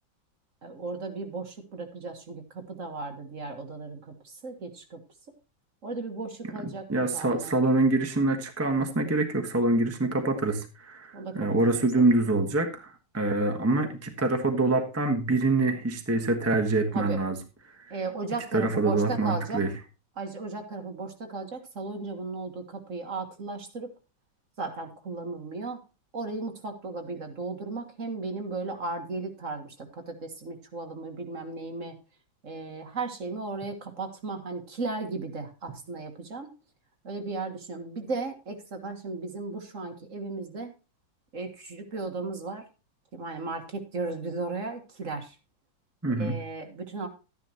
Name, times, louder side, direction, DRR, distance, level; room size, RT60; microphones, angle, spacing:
voice 1, 0.6-5.0 5.8-7.5 11.1-12.1 16.9-17.2 17.9-19.6 20.2-23.9 24.6-25.8 26.1-31.9 32.4-36.5 37.0-40.7 41.3-42.6 43.1-45.4 46.2-47.1, right 3 dB, 45° right, 5 dB, 1.7 m, -36 dB
voice 2, 6.9-17.4 17.8-17.9 18.5-19.7 46.0-46.3, right 2 dB, 10° right, 4 dB, 0.9 m, -25 dB
12.5 x 10.5 x 2.9 m, 0.29 s
omnidirectional pair, 2.1 m